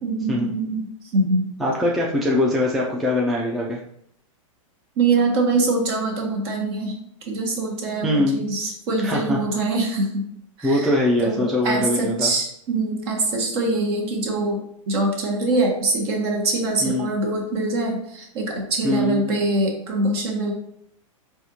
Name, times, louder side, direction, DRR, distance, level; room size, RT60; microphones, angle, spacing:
voice 1, 0.0-0.9 1.1-1.5 5.0-7.0 7.3-10.2 10.6-10.9 11.2-14.6 14.9-20.5, right 2 dB, 50° right, 0 dB, 1.1 m, -23 dB
voice 2, 1.6-3.8 8.0-8.4 9.0-9.4 10.6-12.3 16.8-17.1 18.8-19.2, left 1 dB, ahead, -4 dB, 0.3 m, -22 dB
4.1 x 2.4 x 2.8 m, 0.71 s
hypercardioid pair, 135°, 17 cm